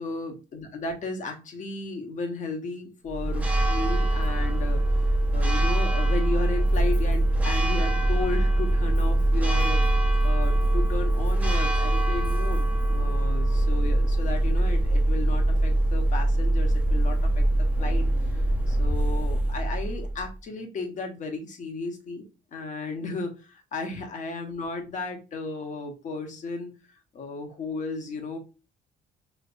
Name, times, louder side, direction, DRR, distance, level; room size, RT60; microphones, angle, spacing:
voice 1, 0.0-17.5 17.8-22.2 22.5-26.7 27.1-28.4, left 3 dB, 45° left, 4 dB, 1.1 m, -34 dB
Church bell, 3.1-20.3, right 1 dB, 10° right, 0.8 m, -23 dB
3.3 x 3.0 x 2.5 m, 0.31 s
cardioid pair, 110°, 17 cm